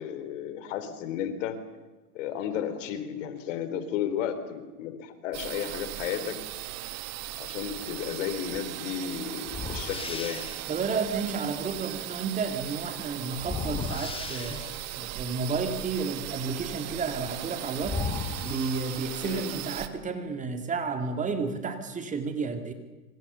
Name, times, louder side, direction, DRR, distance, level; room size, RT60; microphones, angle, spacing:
voice 1, 0.0-1.6 2.1-6.4 7.4-10.5 19.2-19.5, left 9 dB, 50° left, 11 dB, 3.9 m, -33 dB
sound 1, 5.3-19.9, right 15 dB, 35° right, 1.9 m, -38 dB
sound 2, 8.5-8.7 9.5-10.7 13.4-15.0 17.3-17.4 17.8-19.4, left 4 dB, 10° left, 2.0 m, -36 dB
voice 2, 10.7-14.6 14.9-18.0 18.4-22.7, right 4 dB, 15° right, 7 dB, 2.4 m, -31 dB
26.5 x 25.5 x 7.0 m, 1.2 s
hypercardioid pair, 125°, 47 cm